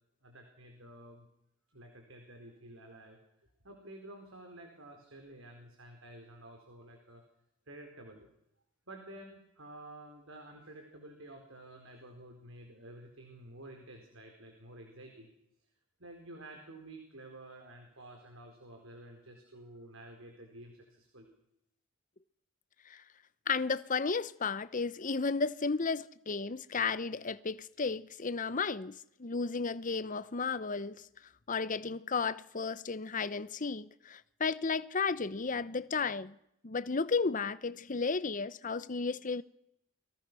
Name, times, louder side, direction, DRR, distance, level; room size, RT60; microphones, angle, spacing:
voice 1, 0.2-1.3 1.7-3.2 3.6-7.2 7.7-8.3 8.9-15.3 16.0-21.3, right 1 dB, 80° right, 4.7 m, -51 dB
voice 2, 23.5-31.0 31.5-36.4 36.6-39.4, left 4 dB, 40° left, 0.8 m, -33 dB
29.5 x 22.5 x 6.3 m
head